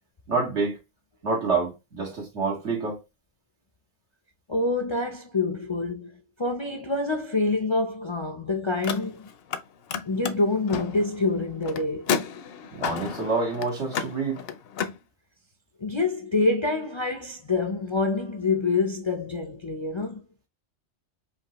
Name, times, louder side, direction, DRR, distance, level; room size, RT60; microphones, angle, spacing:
voice 1, 0.3-0.8 1.2-3.0 12.7-14.4, right 4 dB, 80° right, 2.2 m, -27 dB
voice 2, 4.5-6.1 6.4-9.3 10.0-12.2 15.8-20.2, left 3 dB, 40° left, 0.4 m, -26 dB
Car, 8.7-9.6 9.9-15.0, left 7 dB, 65° left, 0.7 m, -32 dB
5.0 x 2.6 x 2.9 m
omnidirectional pair, 1.2 m